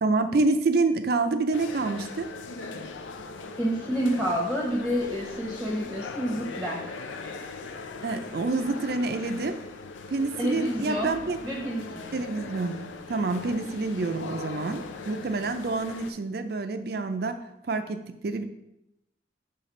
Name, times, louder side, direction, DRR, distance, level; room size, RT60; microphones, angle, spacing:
voice 1, 0.0-2.3 8.0-9.6 10.1-11.4 12.1-18.4, right 3 dB, 55° right, 9 dB, 0.4 m, -27 dB
sound 1, 1.5-16.1, left 4 dB, 85° left, 0.5 m, -40 dB
voice 2, 3.6-6.8 10.4-11.1 11.4-12.1, equal, 5° right, -3 dB, 0.8 m, -29 dB
5.8 x 3.3 x 5.3 m, 0.86 s
head